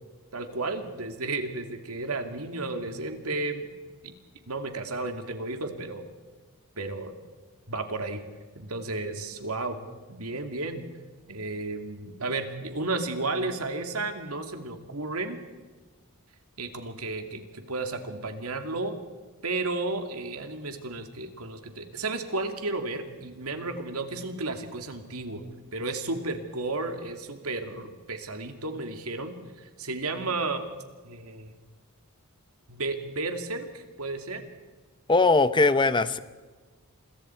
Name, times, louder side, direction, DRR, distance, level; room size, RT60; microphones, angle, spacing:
voice 1, 0.3-3.7 4.0-4.1 4.5-6.0 6.8-7.1 7.7-8.2 8.5-9.8 10.1-10.9 11.3-15.4 16.6-19.0 19.4-25.4 25.7-30.6 31.0-31.5 32.7-34.4, right 3 dB, 75° right, 6 dB, 2.5 m, -33 dB
voice 2, 35.1-36.2, left 3 dB, 20° left, 13 dB, 0.8 m, -20 dB
28.0 x 23.0 x 4.6 m, 1.4 s
head